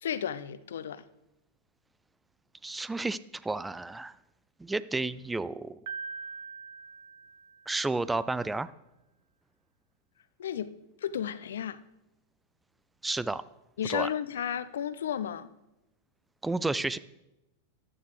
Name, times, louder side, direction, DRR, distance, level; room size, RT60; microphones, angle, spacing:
voice 1, 0.0-1.0 10.4-10.7 11.0-11.8 13.8-15.5, left 9 dB, 65° left, 0.6 m, -33 dB
voice 2, 2.6-4.2 4.6-5.8 7.7-8.7 13.0-13.4 13.9-14.1 16.4-17.0, right 2 dB, 10° right, 0.4 m, -31 dB
Piano, 5.9-8.0, right 5 dB, 55° right, 0.8 m, -42 dB
14.5 x 11.5 x 3.3 m
figure-of-eight pair, 90°, 0 cm